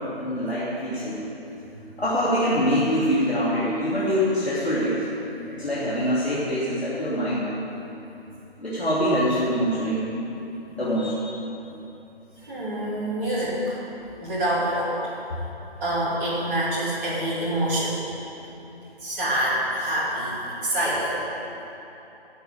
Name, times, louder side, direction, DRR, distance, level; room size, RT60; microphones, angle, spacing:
voice 1, 0.1-1.3 2.0-5.1 5.5-7.5 8.6-10.1 10.7-11.4 12.4-12.5, equal, 85° left, -9 dB, 3.2 m, -24 dB
voice 2, 12.5-13.8 14.2-15.0 15.8-18.0 19.0-21.2, right 1 dB, 15° right, -9 dB, 2.6 m, -26 dB
11.5 x 7.4 x 8.7 m, 3.0 s
figure-of-eight pair, 155°, 31 cm